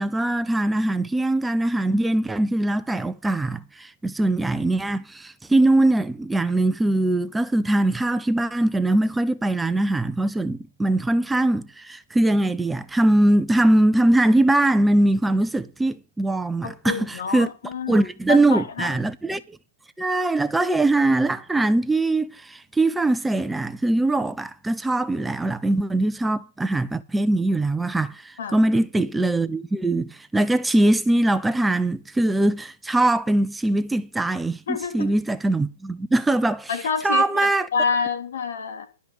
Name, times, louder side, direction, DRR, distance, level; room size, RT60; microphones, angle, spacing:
voice 1, 0.0-17.5 17.9-19.6 20.0-34.6 34.9-36.7 37.0-37.7, right 2 dB, 5° right, 0.5 m, -22 dB
voice 2, 16.6-19.0 28.4-28.6 34.7-35.1 36.7-38.9, left 5 dB, 70° left, 3.3 m, -28 dB
12.0 x 5.4 x 7.8 m
hypercardioid pair, 135°, 0 cm